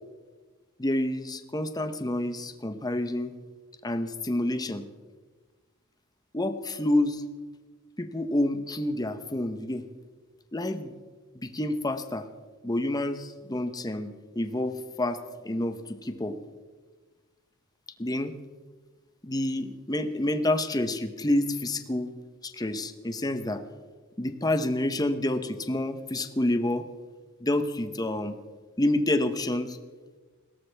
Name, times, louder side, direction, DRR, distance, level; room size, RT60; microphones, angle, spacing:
voice 1, 0.8-3.3 3.8-4.9 6.3-7.2 8.0-9.8 10.5-10.9 11.3-12.3 12.6-16.4 18.0-18.4 19.2-22.1 22.4-23.6 24.2-26.9 27.4-28.4 28.8-29.8, left 1 dB, 15° left, 9 dB, 0.9 m, -28 dB
21.5 x 17.5 x 3.4 m, 1.4 s
head